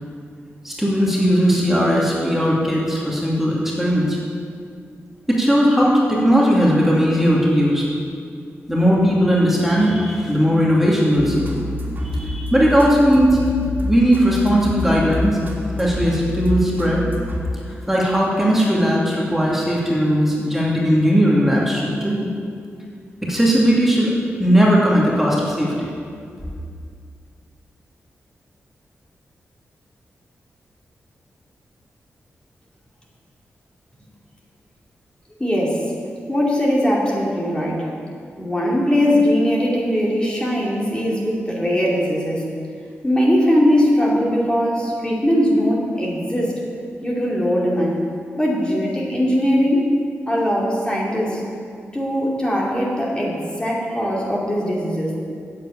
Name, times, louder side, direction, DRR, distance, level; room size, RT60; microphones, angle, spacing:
voice 1, 0.6-4.2 5.3-7.9 8.7-11.5 12.0-13.4 13.9-15.4 15.8-17.0 17.7-22.2 23.2-24.1 24.4-25.9, equal, 5° right, -5 dB, 2.5 m, -18 dB
sound 1, 11.2-18.0, left 1 dB, 40° right, 2.5 m, -27 dB
voice 2, 35.4-35.9 36.3-37.9 38.4-42.4 43.0-46.6 47.0-48.0 48.4-49.8 50.3-51.4 51.9-55.1, equal, 20° left, -4 dB, 2.7 m, -20 dB
8.2 x 7.7 x 8.7 m, 2.3 s
cardioid pair, 60°, 5 cm